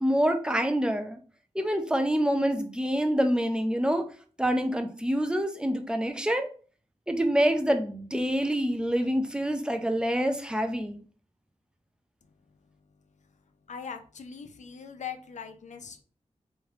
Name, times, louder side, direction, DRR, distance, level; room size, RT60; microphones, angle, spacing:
voice 1, 0.0-1.2 1.5-4.1 4.4-6.5 7.1-11.0, equal, 5° right, 5 dB, 0.6 m, -26 dB
voice 2, 13.7-16.0, left 7 dB, 80° left, 8 dB, 0.5 m, -41 dB
3.4 x 3.2 x 3.6 m, 0.40 s
wide cardioid pair, 95°, 12 cm